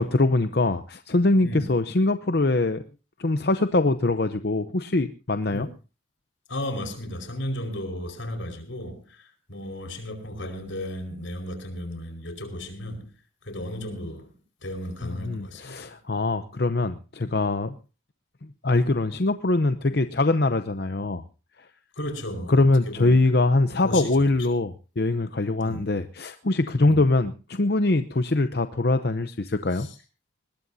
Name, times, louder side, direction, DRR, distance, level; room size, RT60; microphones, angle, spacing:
voice 1, 0.0-2.8 3.2-5.7 15.0-17.8 18.6-21.2 22.5-29.9, left 2 dB, 55° left, 9 dB, 0.7 m, -23 dB
voice 2, 6.5-13.1 13.4-14.3 14.6-16.0 22.0-23.2 23.8-24.5 25.6-25.9 26.9-27.0 29.7-29.9, left 1 dB, 85° left, 6 dB, 4.9 m, -34 dB
21.0 x 20.0 x 2.7 m, 0.33 s
head